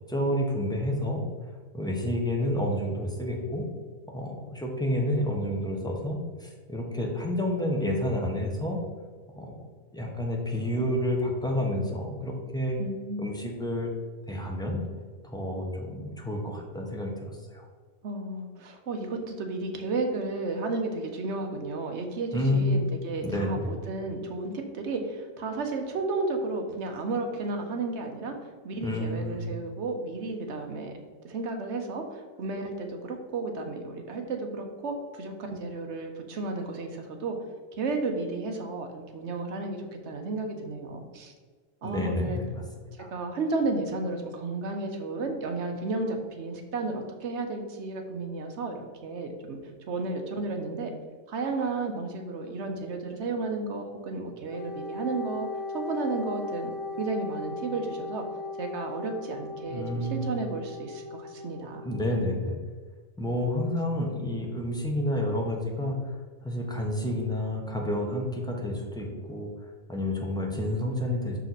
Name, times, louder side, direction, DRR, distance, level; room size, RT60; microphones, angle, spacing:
voice 1, 0.1-1.2 1.7-3.7 4.1-8.8 9.4-9.6 9.9-12.8 13.2-13.9 14.3-14.8 15.2-17.7 22.3-22.8 23.2-23.7 28.8-29.5 41.8-42.6 43.0-43.1 59.7-60.3 61.8-62.6 63.2-66.1 66.4-69.5 69.9-71.4, left 1 dB, 5° left, 0 dB, 0.7 m, -29 dB
voice 2, 12.8-13.3 18.0-28.4 28.6-30.9 31.2-37.4 37.8-41.3 41.8-42.4 43.1-49.6 49.9-50.9 51.3-55.5 55.7-58.2 58.6-61.9, right 3 dB, 60° right, 4 dB, 1.0 m, -33 dB
Wind instrument woodwind instrument, 54.5-62.2, left 3 dB, 75° right, 1.3 m, -38 dB
6.0 x 4.4 x 4.0 m, 1.5 s
omnidirectional pair, 1.4 m